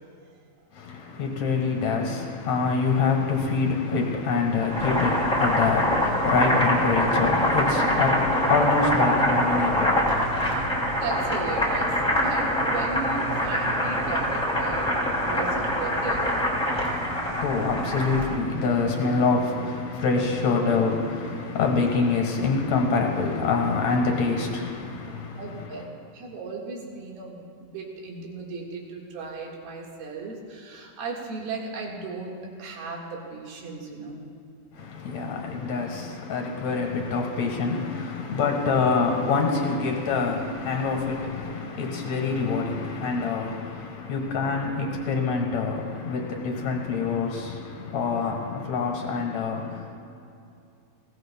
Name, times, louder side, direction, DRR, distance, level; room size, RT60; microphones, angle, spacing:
voice 1, 0.7-10.7 16.7-25.7 34.7-50.0, left 4 dB, 55° left, 2.4 m, -26 dB
Boiling, 4.6-18.4, equal, ahead, 1.9 m, -24 dB
voice 2, 11.0-14.9 15.2-16.2 25.4-25.8 26.1-34.2, right 4 dB, 90° right, 3.7 m, -36 dB
21.0 x 17.0 x 2.3 m
omnidirectional pair, 4.2 m